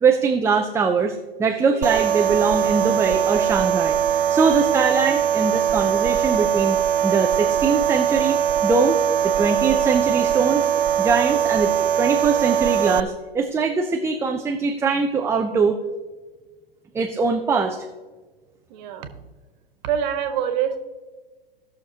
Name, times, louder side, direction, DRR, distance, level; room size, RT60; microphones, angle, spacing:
voice 1, 0.0-6.8 7.0-9.0 9.2-10.7 11.0-15.8 16.9-17.9, right 5 dB, 10° right, 3 dB, 0.5 m, -22 dB
sound 1, 1.8-13.0, right 9 dB, 65° right, 0.6 m, -21 dB
voice 2, 18.7-19.1 19.8-20.8, right 8 dB, 45° right, 7 dB, 1.5 m, -25 dB
18.5 x 6.5 x 2.8 m, 1.3 s
hypercardioid pair, 110°, 30 cm